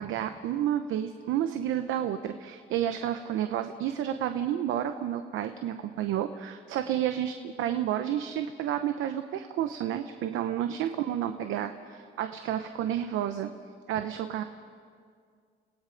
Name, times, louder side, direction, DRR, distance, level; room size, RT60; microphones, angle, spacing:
voice 1, 0.0-13.5 13.9-14.4, right 10 dB, 90° right, 8 dB, 0.8 m, -30 dB
29.0 x 17.5 x 5.2 m, 2.1 s
cardioid pair, 90°, 20 cm